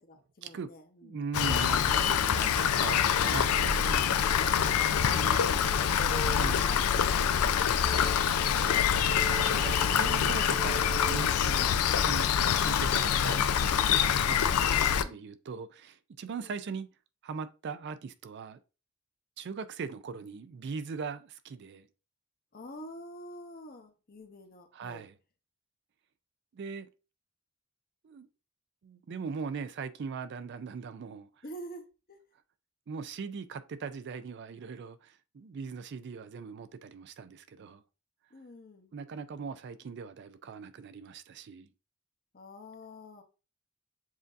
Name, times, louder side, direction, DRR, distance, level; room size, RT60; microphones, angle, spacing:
voice 1, 0.1-1.2 4.4-4.7 5.1-5.4 5.7-7.6 11.4-12.0 14.7-15.2 16.3-16.5 22.5-25.1 31.4-32.2 38.3-38.9 42.3-43.2, equal, 40° left, 0.8 m, -45 dB
voice 2, 1.0-4.2 5.1-5.4 6.3-6.6 8.0-8.2 9.3-11.3 12.0-16.9 17.2-18.6 19.4-21.9 24.7-25.1 26.5-26.9 28.0-28.3 28.8-31.3 32.9-37.8 38.9-41.7, right 5 dB, 50° right, 0.3 m, -40 dB
Rain, 1.3-15.0, left 8 dB, 80° left, 0.4 m, -26 dB
sound 1, 1.5-11.2, right 3 dB, 10° right, 1.0 m, -46 dB
7.3 x 2.6 x 2.5 m
head